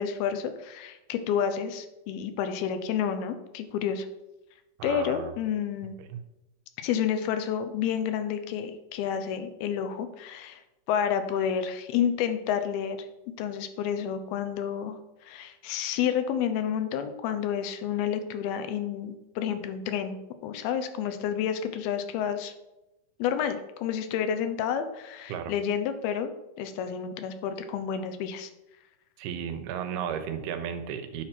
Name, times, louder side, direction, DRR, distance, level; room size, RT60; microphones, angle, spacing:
voice 1, 0.0-4.1 4.8-5.9 6.8-10.6 10.9-13.0 13.4-20.2 20.4-22.5 23.2-26.3 26.6-28.5, left 8 dB, 85° left, 9 dB, 2.7 m, -30 dB
voice 2, 4.8-5.3 6.1-6.2 25.3-25.5 29.2-31.2, right 8 dB, 90° right, 8 dB, 2.8 m, -34 dB
9.6 x 4.4 x 6.0 m, 0.97 s
omnidirectional pair, 4.3 m